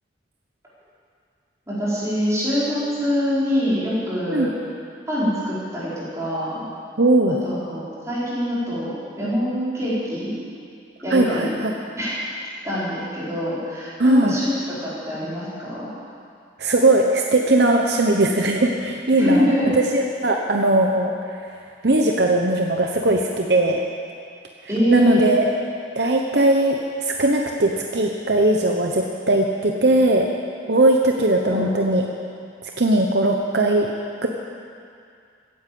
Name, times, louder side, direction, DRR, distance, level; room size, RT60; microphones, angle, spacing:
voice 1, 1.7-4.5 5.1-6.6 7.4-10.3 11.0-11.5 12.0-12.2 12.6-14.5 14.8-15.9 19.2-19.7 24.7-25.4 31.5-31.7, equal, 15° right, -9 dB, 4.8 m, -24 dB
voice 2, 7.0-7.4 11.1-11.7 14.0-14.4 16.6-21.1 21.8-23.8 24.9-25.5 26.0-30.3 30.7-32.1 32.6-33.9 34.2-34.3, right 2 dB, 60° right, 1 dB, 0.9 m, -19 dB
16.0 x 10.0 x 7.7 m, 2.4 s
head